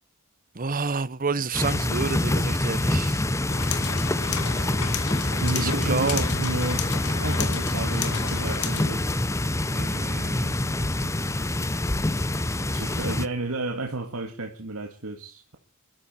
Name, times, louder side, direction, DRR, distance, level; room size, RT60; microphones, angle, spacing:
voice 1, 0.5-3.2 5.5-6.2 9.7-11.3 12.7-12.8, right 4 dB, 40° right, 0.9 m, -30 dB
sound 1, 1.5-13.3, left 1 dB, 15° left, 0.7 m, -26 dB
sound 2, 3.5-8.9, left 7 dB, 90° left, 1.9 m, -33 dB
voice 2, 5.4-6.9 7.1-9.1 12.7-15.6, right 2 dB, 70° right, 1.9 m, -32 dB
21.5 x 13.0 x 4.3 m
head